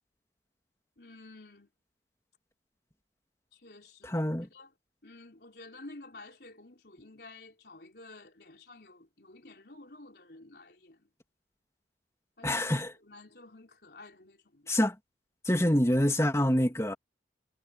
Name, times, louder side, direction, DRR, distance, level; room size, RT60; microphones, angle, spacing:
voice 1, 1.0-1.7 3.5-4.7 5.0-11.1 12.4-12.5 13.0-14.7, left 2 dB, 65° left, 4.5 m, -51 dB
voice 2, 4.0-4.5 12.4-12.9 14.7-14.9 15.4-16.9, left 1 dB, 15° left, 2.8 m, -26 dB
head